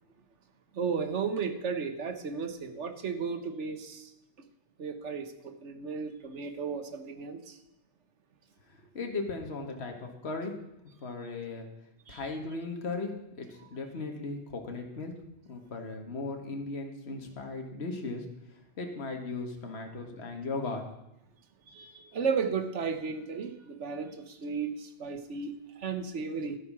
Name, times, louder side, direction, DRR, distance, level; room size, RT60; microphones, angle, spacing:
voice 1, 0.7-4.1 4.8-7.6 12.1-12.3 21.7-26.6, right 5 dB, 85° right, 9 dB, 1.5 m, -34 dB
voice 2, 8.7-10.6 11.0-11.7 12.1-15.1 15.5-18.3 18.5-20.8, left 3 dB, 65° left, 3 dB, 1.8 m, -37 dB
12.0 x 9.5 x 6.1 m, 0.87 s
omnidirectional pair, 1.2 m